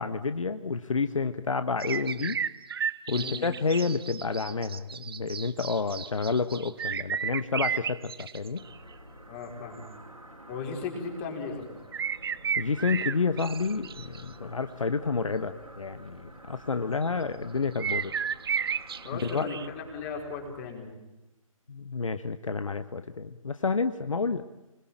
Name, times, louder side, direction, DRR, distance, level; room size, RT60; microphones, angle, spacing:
voice 1, 0.0-2.4 3.1-8.6 12.6-18.1 19.2-19.5 21.7-24.4, left 4 dB, 65° left, 11 dB, 1.3 m, -29 dB
sound 1, 1.8-8.7 11.9-14.2 17.8-19.7, right 7 dB, 45° right, 0.9 m, -33 dB
voice 2, 3.1-3.4 9.3-9.9 10.5-11.6 19.0-20.9, left 5 dB, 20° left, 2 dB, 5.1 m, -36 dB
sound 2, 8.6-20.6, right 1 dB, 85° right, 6.0 m, -49 dB
27.0 x 20.5 x 9.0 m, 0.99 s
figure-of-eight pair, 145°, 18 cm